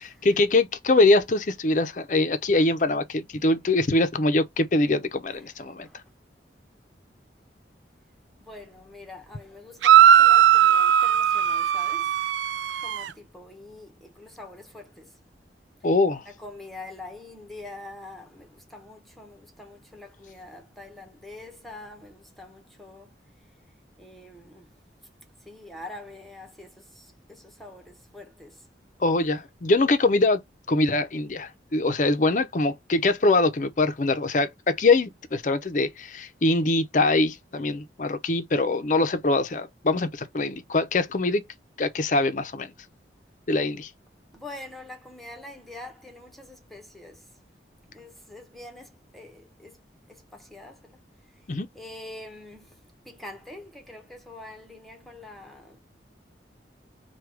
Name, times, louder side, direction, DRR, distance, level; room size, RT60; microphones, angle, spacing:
voice 1, 0.2-5.9 15.8-16.2 29.0-30.4 30.7-41.4 41.8-42.7 43.5-43.9 51.5-51.7, left 2 dB, 45° left, 0.5 m, -23 dB
voice 2, 8.4-12.2 12.8-15.2 16.2-23.2 23.4-23.5 24.0-24.7 25.4-28.7 44.3-47.3 47.9-51.0 51.3-51.5 51.7-55.8, left 2 dB, ahead, 0.8 m, -45 dB
sound 1, 9.8-13.1, right 10 dB, 85° right, 0.3 m, -18 dB
4.6 x 2.3 x 4.7 m
head